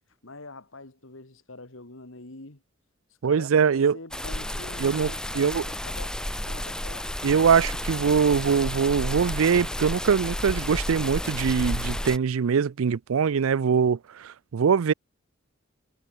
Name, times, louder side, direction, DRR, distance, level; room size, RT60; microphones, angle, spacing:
voice 1, 0.2-2.6 3.2-6.2 6.4-7.1 13.4-13.5, left 2 dB, 70° left, 2.4 m, -45 dB
voice 2, 3.2-4.0 4.8-5.6 7.2-14.9, right 6 dB, 85° right, 0.4 m, -23 dB
sound 1, 4.1-12.2, left 1 dB, 5° left, 0.5 m, -31 dB
head